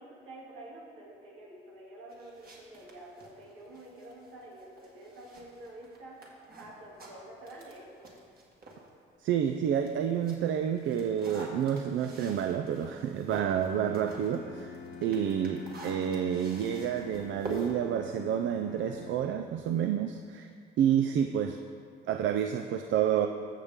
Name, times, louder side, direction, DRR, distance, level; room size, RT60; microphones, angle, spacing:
voice 1, 0.0-8.1, right 1 dB, 90° right, -5 dB, 2.6 m, -48 dB
sound 1, 2.1-8.9 9.3-19.0, right 2 dB, 50° right, 1.9 m, -48 dB
voice 2, 9.2-14.7 15.0-20.5 20.8-21.6 22.1-23.3, right 9 dB, 70° right, 6 dB, 0.5 m, -29 dB
Bowed string instrument, 13.9-19.8, left 4 dB, 60° left, 1.0 m, -46 dB
15.0 x 6.7 x 3.7 m, 2.3 s
cardioid pair, 90°, 20 cm